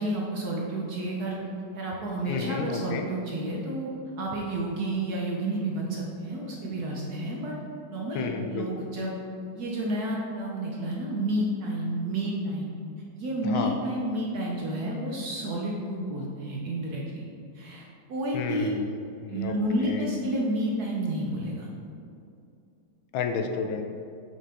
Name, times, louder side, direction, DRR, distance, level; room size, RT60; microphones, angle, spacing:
voice 1, 0.0-1.4 1.7-3.9 4.2-7.6 7.9-9.2 9.5-12.8 13.1-17.2 17.5-18.7 19.3-21.7 23.4-23.5, right 1 dB, 65° right, -2 dB, 1.1 m, -30 dB
voice 2, 2.3-3.0 8.1-8.7 13.4-13.8 18.3-19.5 19.8-20.1 23.1-23.8, left 5 dB, 80° left, 5 dB, 1.3 m, -31 dB
5.7 x 5.5 x 3.7 m, 2.6 s
omnidirectional pair, 2.2 m